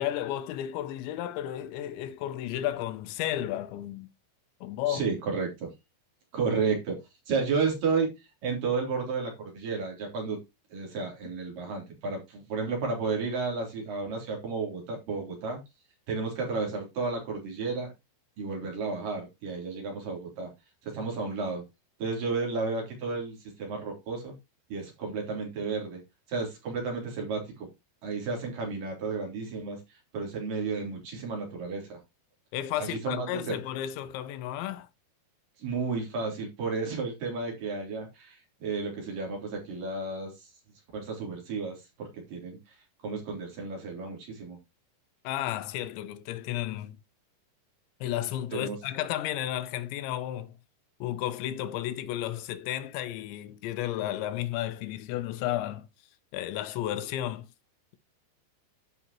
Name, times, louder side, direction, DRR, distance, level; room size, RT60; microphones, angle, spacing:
voice 1, 0.0-4.1 4.6-5.1 32.5-34.9 45.2-47.0 48.0-50.5 51.0-55.9 56.3-57.5, left 12 dB, 85° left, 3.0 m, -33 dB
voice 2, 4.9-5.7 6.3-7.0 7.3-8.1 8.4-10.4 10.7-15.6 16.1-17.9 18.4-20.5 20.8-21.6 22.0-24.3 24.7-26.0 26.3-27.7 28.0-29.8 30.1-32.0 32.8-33.5 35.6-40.5 40.9-42.6 43.0-44.6 48.5-48.8, right 4 dB, 50° right, 4.8 m, -32 dB
14.5 x 5.6 x 3.0 m
omnidirectional pair, 5.2 m